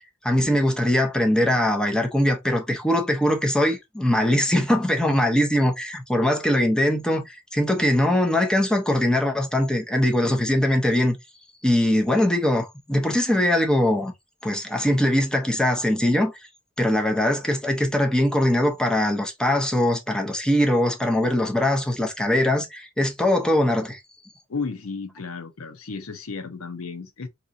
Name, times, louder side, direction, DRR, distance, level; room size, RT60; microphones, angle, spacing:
voice 1, 0.2-11.2 11.6-14.1 14.4-16.3 16.8-24.0, left 1 dB, 5° left, 0.7 m, -21 dB
voice 2, 24.5-27.3, left 4 dB, 75° left, 0.7 m, -33 dB
3.8 x 2.9 x 2.5 m
head